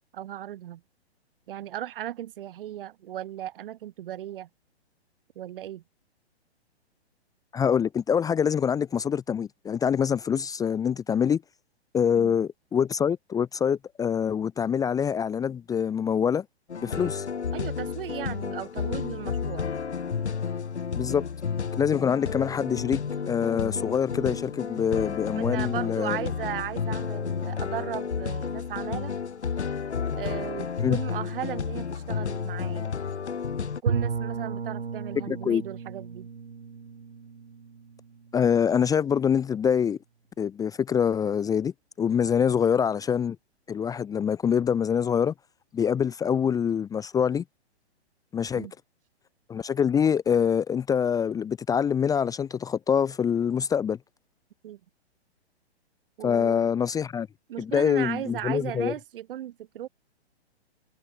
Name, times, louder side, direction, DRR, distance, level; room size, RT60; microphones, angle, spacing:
voice 1, 0.1-0.8 1.5-4.5 5.4-5.8 12.2-12.4 16.9-17.1 17.5-19.7 25.3-29.1 30.1-32.9 33.6-36.3 48.5-48.7 54.6-54.8 56.2-56.7 57.5-59.9, right 12 dB, 55° right, 3.9 m, -36 dB
voice 2, 7.5-11.4 11.9-16.4 16.8-17.2 21.0-21.2 21.7-23.0 23.3-26.3 30.8-31.0 35.3-35.6 38.3-40.0 40.4-43.4 43.7-45.3 45.7-47.4 48.3-48.7 49.5-54.0 56.2-57.3 57.6-58.9, left 7 dB, 10° left, 0.9 m, -25 dB
sound 1, 16.7-33.8, left 6 dB, 80° left, 2.8 m, -31 dB
Bowed string instrument, 33.9-38.7, right 5 dB, 80° right, 7.0 m, -34 dB
hypercardioid pair, 130°, 33 cm